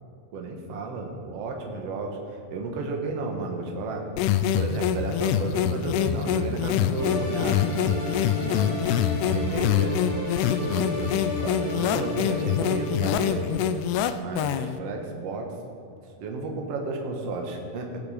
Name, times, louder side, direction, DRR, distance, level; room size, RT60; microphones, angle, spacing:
voice 1, 0.3-4.1 4.5-8.8 9.2-9.9 10.5-13.4 14.2-15.5 16.2-18.0, right 3 dB, 55° right, 2 dB, 1.8 m, -33 dB
sound 1, 4.2-14.8, left 9 dB, 85° left, 2.5 m, -25 dB
sound 2, 7.0-13.9, left 2 dB, 35° left, 3.1 m, -34 dB
18.5 x 7.0 x 5.0 m, 2.8 s
omnidirectional pair, 4.6 m